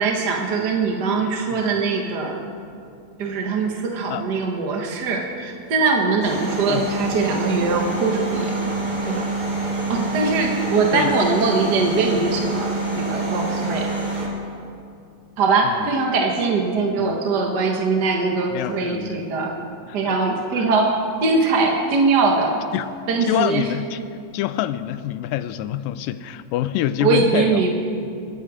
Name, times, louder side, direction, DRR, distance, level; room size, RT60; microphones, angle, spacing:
voice 1, 0.0-2.4 3.2-8.6 9.0-9.3 9.9-13.9 15.4-19.6 19.9-22.6 23.1-23.7 27.0-27.7, right 4 dB, 55° right, 1 dB, 1.1 m, -21 dB
sound 1, 6.2-14.3, right 2 dB, 30° right, 3.1 m, -26 dB
voice 2, 18.5-19.3 20.0-20.2 20.6-20.7 22.7-22.9 23.3-24.0 24.3-27.6, left 13 dB, 90° left, 13 dB, 2.3 m, -26 dB
24.5 x 11.0 x 5.0 m, 2.4 s
omnidirectional pair, 3.9 m